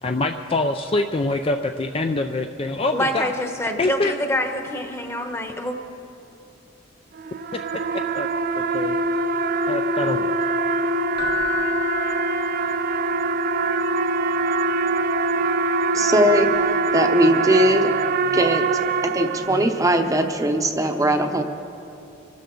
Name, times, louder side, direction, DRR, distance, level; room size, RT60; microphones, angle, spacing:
voice 1, 0.0-3.3 3.8-4.1 7.5-8.3 8.6-9.0 9.7-10.3, left 2 dB, 30° left, 5 dB, 0.4 m, -25 dB
voice 2, 2.9-5.8, left 1 dB, 15° left, 5 dB, 1.1 m, -26 dB
sound 1, 7.2-19.9, right 3 dB, 50° right, 0.4 m, -23 dB
Keyboard (musical), 11.2-13.1 16.4-16.5, left 7 dB, 60° left, 1.5 m, -31 dB
voice 3, 15.9-16.5 16.9-17.9 18.3-18.7 19.0-21.4, equal, 20° right, 5 dB, 0.8 m, -19 dB
25.0 x 12.5 x 3.9 m, 2.8 s
head